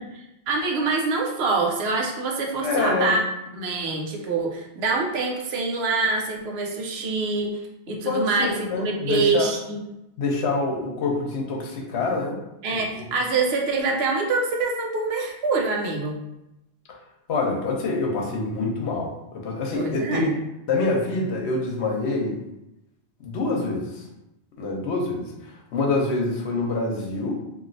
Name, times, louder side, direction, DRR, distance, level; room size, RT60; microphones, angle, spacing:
voice 1, 0.5-3.2 3.5-7.6 7.9-9.8 12.6-16.2 19.7-20.3, right 3 dB, 70° right, 1 dB, 0.8 m, -25 dB
voice 2, 2.6-3.2 8.0-9.5 10.2-12.4 13.0-13.1 17.3-20.3 20.7-22.4 23.2-24.0 24.6-25.3 25.7-27.4, left 3 dB, 80° left, 0 dB, 0.9 m, -26 dB
3.0 x 2.5 x 2.6 m, 0.90 s
omnidirectional pair, 1.1 m